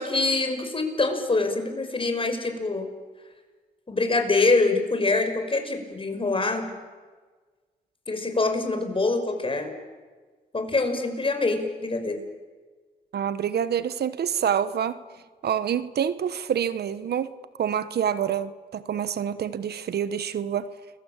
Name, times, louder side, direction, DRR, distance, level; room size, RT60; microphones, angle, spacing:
voice 1, 0.0-2.9 3.9-6.7 8.1-9.7 10.5-12.2, left 3 dB, 30° left, 6 dB, 6.0 m, -25 dB
voice 2, 13.1-15.0 15.4-20.7, right 8 dB, 75° right, 14 dB, 1.2 m, -27 dB
29.5 x 22.5 x 8.9 m, 1.4 s
cardioid pair, 65°, 17 cm